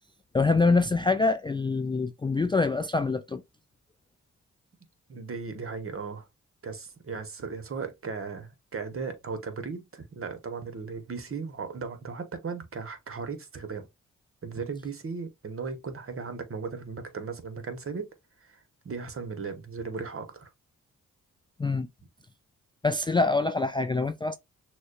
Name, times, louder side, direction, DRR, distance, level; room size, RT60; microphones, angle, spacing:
voice 1, 0.3-3.4 21.6-21.9 22.8-24.4, left 3 dB, 15° left, 0.3 m, -25 dB
voice 2, 5.1-6.3 6.6-13.9 14.4-18.1 18.4-20.5, right 5 dB, 40° right, 1.1 m, -37 dB
6.1 x 2.3 x 2.3 m
supercardioid pair, 45°, 32 cm